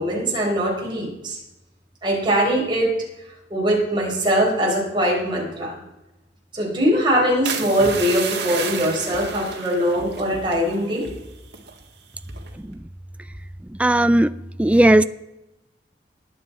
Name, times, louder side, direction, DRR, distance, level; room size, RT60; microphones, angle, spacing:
voice 1, 0.0-1.4 2.0-2.9 3.5-5.8 6.5-11.1, equal, 25° right, -3 dB, 4.3 m, -21 dB
sound 1, 7.5-11.2 11.5-11.8 12.3-12.6, right 6 dB, 65° right, 1.8 m, -31 dB
voice 2, 13.7-14.3 14.6-15.0, right 1 dB, 5° right, 13 dB, 0.3 m, -16 dB
20.5 x 7.2 x 4.3 m, 0.95 s
head